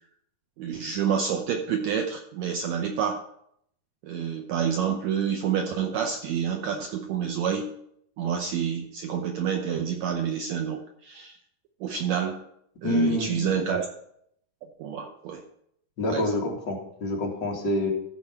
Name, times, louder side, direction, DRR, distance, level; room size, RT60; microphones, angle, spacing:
voice 1, 0.6-3.2 4.0-7.7 8.2-11.3 11.8-12.4 12.8-13.9 14.8-15.4 16.1-16.2, right 7 dB, 70° right, 4 dB, 1.8 m, -28 dB
voice 2, 12.8-13.6 16.0-17.9, left 1 dB, 40° left, -1 dB, 2.2 m, -27 dB
14.5 x 5.2 x 5.8 m, 0.71 s
omnidirectional pair, 3.8 m